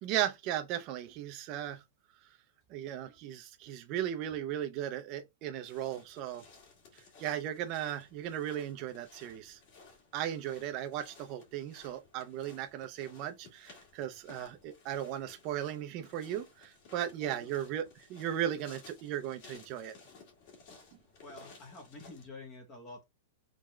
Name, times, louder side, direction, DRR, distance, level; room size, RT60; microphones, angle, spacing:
voice 1, 0.0-1.8 2.7-6.4 7.2-9.6 10.1-20.0, right 11 dB, 30° right, 0.6 m, -36 dB
sound 1, 5.6-22.3, left 4 dB, 35° left, 1.8 m, -57 dB
voice 2, 21.2-23.0, left 2 dB, 20° left, 1.0 m, -48 dB
3.8 x 3.8 x 3.2 m
supercardioid pair, 175°, 0 cm